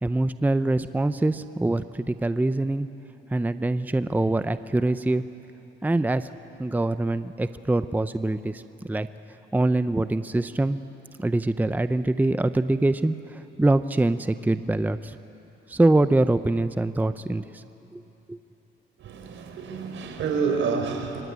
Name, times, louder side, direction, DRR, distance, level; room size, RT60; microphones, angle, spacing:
voice 1, 0.0-2.9 3.3-5.2 5.8-6.3 6.6-9.1 9.5-10.8 11.2-15.2 15.7-17.6 17.9-18.0 18.3-18.4, right 2 dB, 10° right, 12 dB, 0.7 m, -24 dB
voice 2, 19.0-21.2, right 5 dB, 75° right, 5 dB, 4.4 m, -28 dB
25.5 x 24.0 x 9.6 m, 2.9 s
cardioid pair, 90°, 20 cm